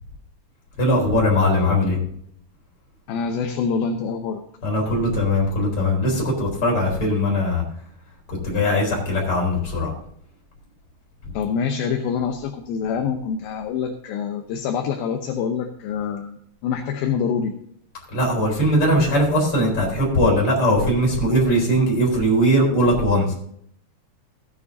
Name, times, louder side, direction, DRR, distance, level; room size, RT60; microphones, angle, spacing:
voice 1, 0.8-2.0 4.6-7.6 8.4-9.9 18.1-23.3, equal, 35° left, -1 dB, 4.9 m, -20 dB
voice 2, 3.1-4.4 11.3-16.4 16.6-17.5, left 6 dB, 75° left, 4 dB, 2.6 m, -25 dB
16.5 x 9.6 x 2.7 m, 0.66 s
omnidirectional pair, 4.6 m